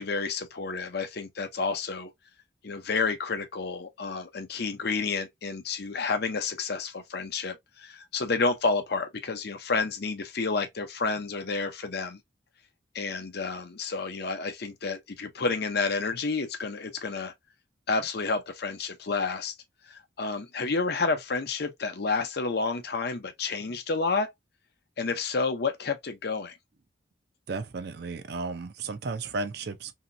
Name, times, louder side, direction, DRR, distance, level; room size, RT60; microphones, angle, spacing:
voice 1, 0.0-2.1 2.6-12.2 12.9-17.3 17.9-19.5 19.9-24.3 25.0-26.6, left 4 dB, 55° left, 0.6 m, -30 dB
voice 2, 27.5-29.9, right 3 dB, 55° right, 0.5 m, -34 dB
3.0 x 2.8 x 2.5 m
head